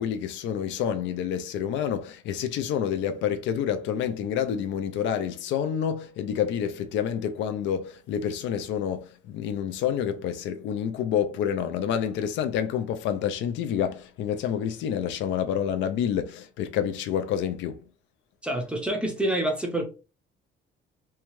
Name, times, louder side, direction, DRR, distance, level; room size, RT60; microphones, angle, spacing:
voice 1, 0.0-17.8, left 9 dB, 80° left, 0.4 m, -28 dB
voice 2, 18.4-19.9, right 1 dB, 5° right, 0.5 m, -27 dB
2.7 x 2.2 x 3.0 m
cardioid pair, 170°, 19 cm